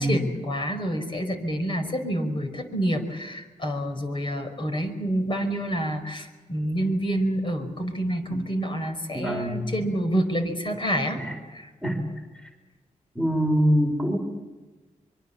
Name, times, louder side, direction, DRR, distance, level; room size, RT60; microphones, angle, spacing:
voice 1, 0.0-11.2 11.5-11.6, equal, 40° left, 6 dB, 5.0 m, -28 dB
voice 2, 9.1-9.7 11.2-11.4 11.8-12.0 13.1-14.2, equal, 5° left, 2 dB, 4.4 m, -24 dB
24.0 x 24.0 x 7.2 m, 1.2 s
cardioid pair, 80°, 14 cm